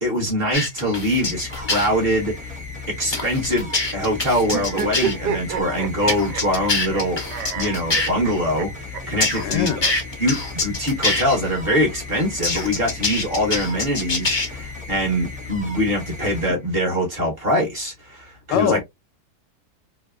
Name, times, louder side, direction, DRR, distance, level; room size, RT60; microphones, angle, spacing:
voice 1, 0.0-2.4 2.9-7.2 7.6-9.7 10.2-18.8, equal, 35° right, 1.3 m, -23 dB
sound 1, 0.5-1.9 3.1-5.1 6.1-8.1 9.2-11.2 12.4-14.5, left 2 dB, 35° left, 0.4 m, -24 dB
sound 2, 0.6-17.2, left 3 dB, 5° right, 0.7 m, -36 dB
sound 3, 4.5-7.0 7.3-8.7 8.9-9.0 9.3-9.4 9.8-9.9 11.0-12.0, right 7 dB, 80° right, 1.2 m, -29 dB
voice 2, 9.4-9.9 18.5-18.8, left 9 dB, 85° left, 1.2 m, -22 dB
3.3 x 2.8 x 2.3 m
omnidirectional pair, 1.9 m